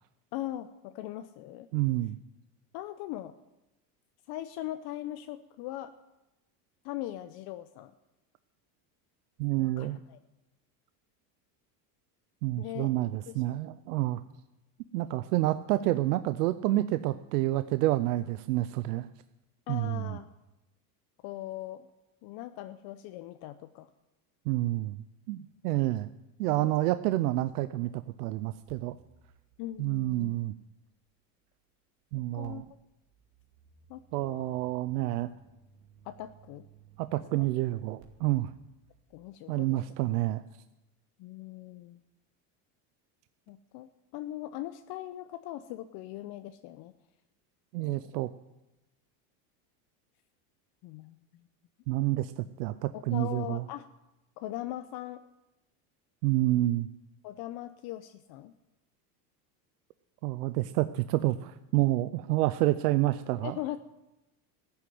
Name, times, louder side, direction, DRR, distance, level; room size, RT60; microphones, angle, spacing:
voice 1, 0.3-1.7 2.7-3.3 4.3-5.9 6.8-7.9 9.6-10.2 12.6-12.9 13.3-13.4 19.7-20.3 21.2-21.9 22.2-23.9 26.5-26.9 29.6-30.4 32.3-32.6 33.9-34.6 36.0-36.7 37.4-37.5 39.1-39.8 41.2-42.0 43.5-46.9 47.8-48.1 50.8-51.2 52.9-53.9 54.4-55.2 57.2-58.5 63.4-63.8, left 14 dB, 55° left, 10 dB, 0.7 m, -40 dB
voice 2, 1.7-2.2 9.4-10.0 12.4-14.2 14.9-19.1 19.7-20.2 24.5-26.1 26.4-29.0 29.8-30.5 32.1-32.6 34.1-35.3 37.0-38.5 39.5-40.4 47.7-48.3 51.9-53.6 56.2-56.9 60.2-63.6, right 16 dB, 90° right, 13 dB, 0.6 m, -29 dB
sound 1, 28.0-31.2 32.4-39.3, right 6 dB, 50° right, 2.5 m, -60 dB
14.0 x 7.1 x 9.3 m, 0.98 s
supercardioid pair, 120°, 45 cm